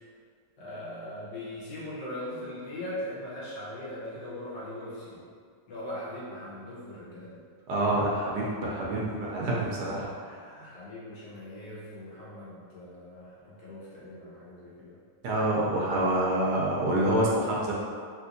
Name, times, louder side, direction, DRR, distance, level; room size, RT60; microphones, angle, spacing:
voice 1, 0.6-5.2 5.7-7.4 10.6-15.0, left 1 dB, 70° left, -7 dB, 1.5 m, -40 dB
voice 2, 7.7-10.7 15.2-17.7, right 1 dB, 75° right, -4 dB, 1.1 m, -27 dB
3.4 x 2.9 x 2.5 m, 2.1 s
omnidirectional pair, 1.9 m